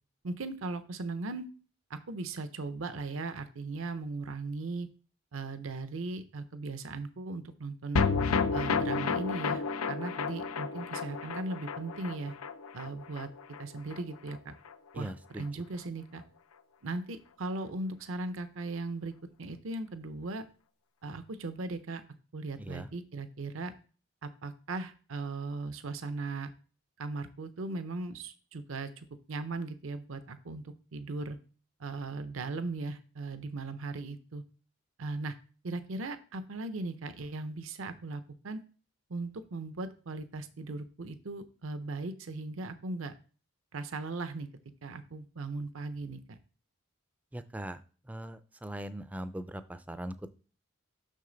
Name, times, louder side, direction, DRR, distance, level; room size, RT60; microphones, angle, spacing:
voice 1, 0.2-1.5 1.9-4.9 5.3-8.0 8.5-12.3 12.7-13.3 13.6-14.5 14.9-16.2 16.8-20.5 21.0-22.0 22.3-23.7 24.2-26.5 27.0-31.4 31.8-34.4 35.0-35.3 35.6-38.6 39.1-43.1 43.7-44.5 44.8-46.4, right 3 dB, 70° right, 11 dB, 0.6 m, -38 dB
sound 1, 8.0-14.4 14.7-14.8 15.0-15.1, left 5 dB, 85° left, 0.6 m, -32 dB
voice 2, 14.9-15.4 22.6-22.9 47.3-47.8 48.1-50.3, right 1 dB, 5° right, 12 dB, 0.3 m, -40 dB
6.4 x 6.3 x 3.9 m, 0.38 s
head